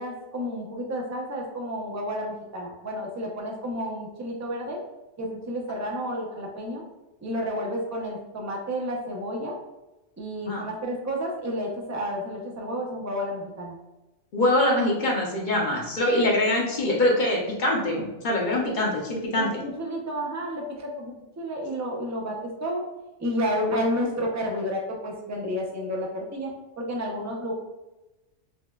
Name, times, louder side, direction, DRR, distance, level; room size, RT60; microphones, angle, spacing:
voice 1, 0.0-4.8 5.2-6.8 7.2-9.6 10.2-13.8 18.6-18.8 19.4-22.8 23.2-26.5 26.8-27.5, equal, 30° right, -1 dB, 0.3 m, -31 dB
voice 2, 14.3-19.6, left 1 dB, 45° left, -1 dB, 0.7 m, -24 dB
5.3 x 2.1 x 2.3 m, 1.0 s
omnidirectional pair, 1.2 m